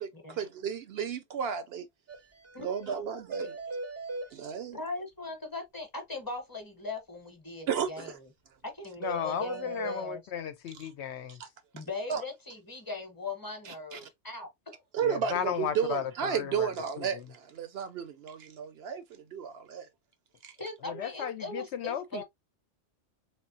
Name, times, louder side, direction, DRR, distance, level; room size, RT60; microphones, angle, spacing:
voice 1, 0.4-1.9 2.6-3.5 4.3-4.8 7.7-8.2 10.7-10.9 11.3-11.5 12.1-12.2 13.7-14.0 14.9-19.9 20.4-20.5, right 7 dB, 65° right, 0.7 m, -33 dB
sound 1, 2.1-2.2 2.4-2.6 2.8-2.9 3.3-4.3 9.0-10.0, right 2 dB, 20° right, 0.5 m, -37 dB
voice 2, 2.5-3.1 4.7-8.3 8.6-10.2 11.7-14.8 20.6-22.2, left 2 dB, 20° left, 0.9 m, -40 dB
voice 3, 9.0-11.4 15.0-16.7 17.0-17.2 21.0-22.2, left 9 dB, 70° left, 0.8 m, -35 dB
3.6 x 3.2 x 2.6 m
omnidirectional pair, 1.2 m